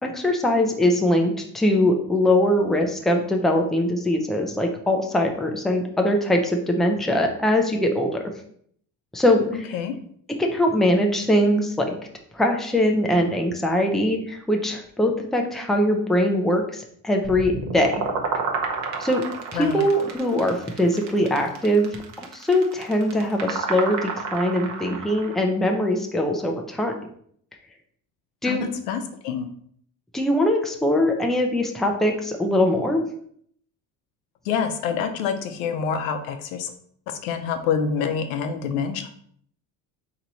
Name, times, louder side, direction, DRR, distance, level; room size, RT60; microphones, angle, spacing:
voice 1, 0.0-8.2 9.1-9.7 10.4-11.9 12.3-18.0 19.0-19.2 19.5-21.9 22.2-26.9 28.4-28.7 30.1-33.0, left 1 dB, ahead, 2 dB, 0.5 m, -22 dB
sound 1, 17.2-25.4, right 5 dB, 45° right, 0.9 m, -30 dB
voice 2, 19.5-19.9 28.5-28.6 28.9-29.5 34.5-36.7 37.2-39.1, left 6 dB, 90° left, 7 dB, 0.8 m, -26 dB
4.4 x 3.0 x 4.0 m, 0.63 s
cardioid pair, 125°, 38 cm